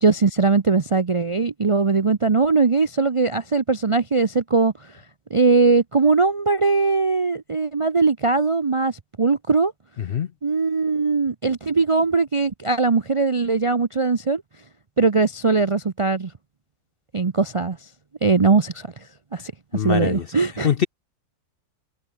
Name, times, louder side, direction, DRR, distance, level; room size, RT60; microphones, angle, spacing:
voice 1, 0.0-4.7 5.3-9.7 10.4-14.4 15.0-16.3 17.1-17.8 18.2-18.9 19.3-19.5 19.8-20.7, right 4 dB, 40° right, 0.5 m, -20 dB
voice 2, 10.0-10.3 19.7-20.3 20.6-20.9, left 8 dB, 55° left, 0.7 m, -23 dB
omnidirectional pair, 1.5 m